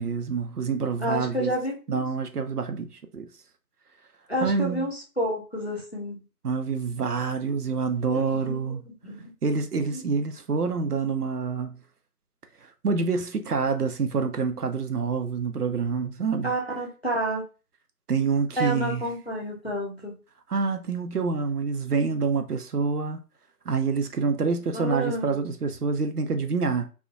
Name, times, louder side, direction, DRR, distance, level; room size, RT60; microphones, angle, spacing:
voice 1, 0.0-1.5 1.9-3.3 4.4-4.9 6.4-8.8 9.4-11.8 12.6-16.5 18.1-19.1 20.5-23.2 23.7-26.9, right 5 dB, 70° right, 0.5 m, -27 dB
voice 2, 1.0-2.0 4.3-6.2 8.1-9.3 9.9-10.0 16.4-17.4 18.6-20.1 24.7-25.4, right 1 dB, 40° left, 0.5 m, -30 dB
2.5 x 2.0 x 2.5 m
figure-of-eight pair, 165°, 50 cm